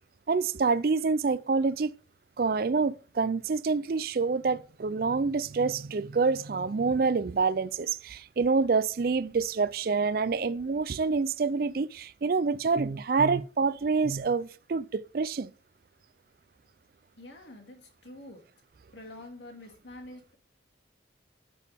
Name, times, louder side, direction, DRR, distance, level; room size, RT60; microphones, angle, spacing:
voice 1, 0.3-1.9 2.4-15.5, right 4 dB, 50° right, 0.4 m, -27 dB
voice 2, 17.2-18.4 18.9-20.3, left 1 dB, 75° left, 2.2 m, -47 dB
8.3 x 7.1 x 3.5 m
head